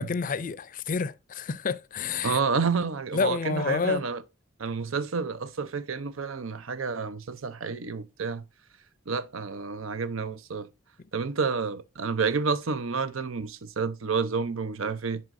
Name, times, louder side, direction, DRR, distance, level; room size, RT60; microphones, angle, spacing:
voice 1, 0.0-2.4 3.1-4.0, left 5 dB, 40° left, 0.4 m, -29 dB
voice 2, 2.2-4.2 4.6-8.4 9.1-10.7 11.1-15.2, right 5 dB, 85° right, 0.7 m, -29 dB
11.0 x 4.3 x 2.6 m
head